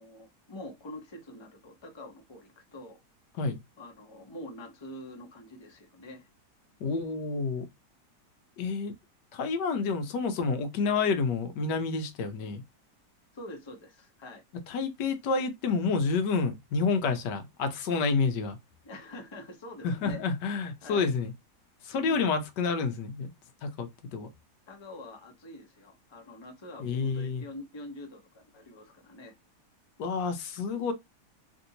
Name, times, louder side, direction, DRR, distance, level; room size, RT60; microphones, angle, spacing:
voice 1, 0.0-3.0 3.8-6.3 13.3-14.4 18.8-20.2 20.8-21.1 21.9-22.3 24.7-29.3, left 1 dB, 25° left, 0.6 m, -45 dB
voice 2, 6.8-7.7 8.6-9.0 9.3-12.6 14.7-18.6 19.8-21.3 21.8-23.3 23.6-24.3 26.8-27.4 30.0-30.9, left 4 dB, 90° left, 1.4 m, -29 dB
3.3 x 2.6 x 2.7 m
omnidirectional pair, 1.8 m